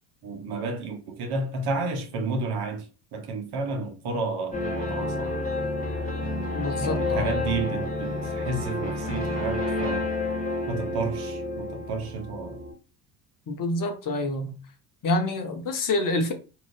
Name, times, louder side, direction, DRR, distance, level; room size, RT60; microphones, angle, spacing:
voice 1, 0.2-5.4 6.8-10.1 10.7-12.6, right 3 dB, 50° right, 1.0 m, -31 dB
sound 1, 4.5-12.7, left 2 dB, 15° left, 1.4 m, -29 dB
voice 2, 6.5-7.3 13.5-14.6 15.0-16.3, left 2 dB, 45° left, 1.0 m, -27 dB
2.8 x 2.5 x 3.4 m
hypercardioid pair, 60°, 48 cm